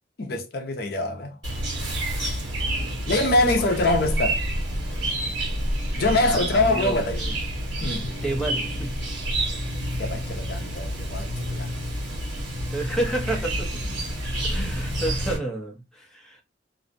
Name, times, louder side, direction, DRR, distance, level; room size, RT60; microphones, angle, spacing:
voice 1, 0.2-1.3 3.1-4.4 5.9-7.2 7.8-8.1 10.0-11.8, left 2 dB, 55° left, 0.5 m, -24 dB
Chirp tweet, 1.4-15.4, right 1 dB, 80° right, 1.2 m, -28 dB
voice 2, 3.6-4.0 6.2-7.4 8.2-8.9 12.7-13.8 14.5-16.4, right 2 dB, 5° left, 0.6 m, -31 dB
2.5 x 2.0 x 2.5 m
head